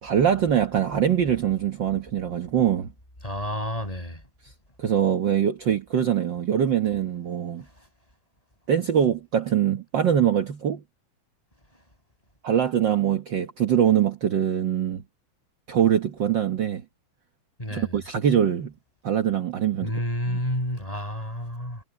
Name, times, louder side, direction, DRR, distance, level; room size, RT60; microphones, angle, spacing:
voice 1, 0.0-2.9 4.8-7.6 8.7-10.8 12.4-15.0 15.7-16.8 17.7-18.7 19.0-19.9 20.3-20.4, right 9 dB, 60° right, 1.2 m, -23 dB
voice 2, 3.2-4.2 17.6-18.0 19.8-21.8, equal, 10° left, 7.1 m, -30 dB
omnidirectional pair, 3.8 m